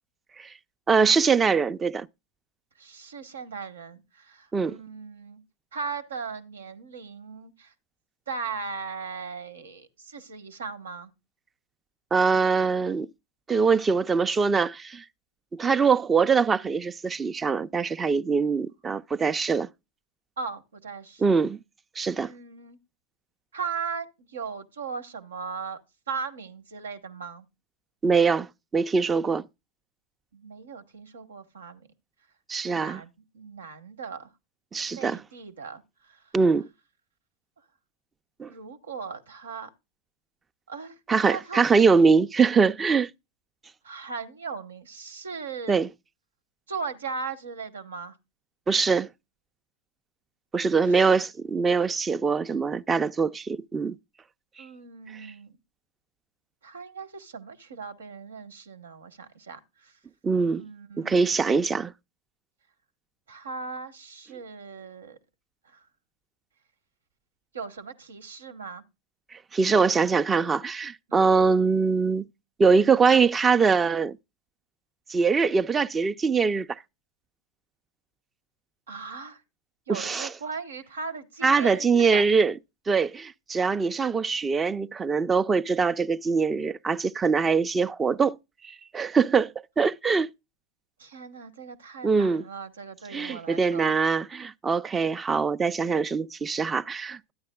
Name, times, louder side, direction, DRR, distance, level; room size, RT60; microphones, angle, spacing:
voice 1, 0.9-2.1 4.5-4.8 12.1-13.1 13.5-15.0 15.5-19.7 21.2-21.6 22.0-22.3 28.0-29.5 32.5-33.0 34.7-35.2 36.3-36.7 38.4-38.5 41.1-43.1 45.7-45.9 48.7-49.1 50.5-54.0 55.1-55.3 60.2-60.6 61.0-61.9 69.3-72.2 72.6-74.2 75.1-76.8 79.9-80.3 81.4-82.5 82.9-88.4 88.6-90.3 92.0-92.5 93.1-97.3, right 5 dB, 20° right, 0.4 m, -23 dB
voice 2, 2.8-5.4 5.7-7.7 8.3-11.1 20.4-21.4 22.2-22.8 23.5-25.8 26.1-27.4 30.3-31.9 32.7-34.3 34.9-36.2 38.5-39.7 40.7-41.0 41.3-41.7 43.8-45.8 46.7-48.1 50.6-51.0 54.6-55.6 56.6-59.9 60.5-61.5 63.3-65.2 65.6-65.8 67.5-68.8 71.1-71.3 78.9-79.4 79.9-82.3 91.0-94.0, right 5 dB, 90° right, 1.1 m, -38 dB
13.0 x 9.5 x 2.2 m
hypercardioid pair, 100°, 0 cm